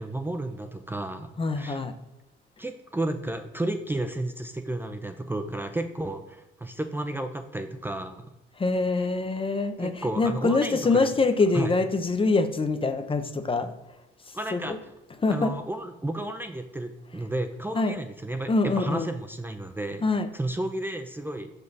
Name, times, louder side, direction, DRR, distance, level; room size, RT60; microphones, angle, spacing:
voice 1, 0.0-1.3 1.5-1.8 2.6-8.3 9.8-11.1 11.5-11.7 14.3-14.8 15.3-20.0 20.3-21.5, right 1 dB, 10° right, 6 dB, 0.5 m, -32 dB
voice 2, 1.4-1.9 8.6-13.7 14.5-14.8 15.2-15.5 17.7-17.9 18.5-19.1 20.0-20.3, left 3 dB, 25° left, 8 dB, 0.7 m, -24 dB
5.7 x 5.3 x 4.0 m, 0.98 s
cardioid pair, 90°, 20 cm